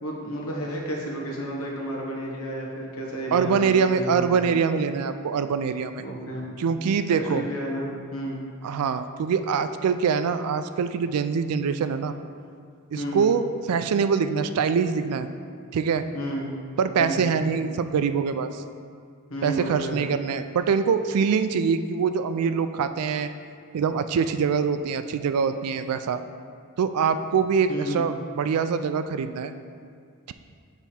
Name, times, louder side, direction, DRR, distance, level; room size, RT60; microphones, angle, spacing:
voice 1, 0.0-4.5 6.0-6.5 7.1-8.4 12.9-13.3 16.1-16.5 17.0-17.3 19.3-20.0 27.7-28.1, equal, 70° left, -3 dB, 1.2 m, -32 dB
voice 2, 3.3-6.0 6.6-7.5 8.6-12.1 12.9-15.3 15.7-16.0 16.8-18.6 19.4-23.3 23.7-26.2 26.8-29.5, right 6 dB, 85° right, 10 dB, 0.3 m, -24 dB
7.2 x 3.5 x 4.3 m, 2.1 s
head